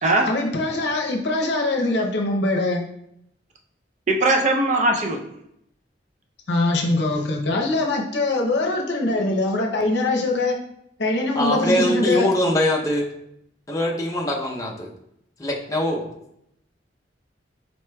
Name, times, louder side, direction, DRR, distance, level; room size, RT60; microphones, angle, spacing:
voice 1, 0.3-2.8 6.5-10.6 11.0-12.3, left 2 dB, 65° left, 1 dB, 0.6 m, -22 dB
voice 2, 4.1-5.2, right 2 dB, 40° right, 1 dB, 0.5 m, -19 dB
voice 3, 11.3-13.1 13.7-14.9 15.4-16.1, left 1 dB, 20° left, -2 dB, 0.6 m, -22 dB
4.8 x 4.1 x 2.2 m, 0.76 s
head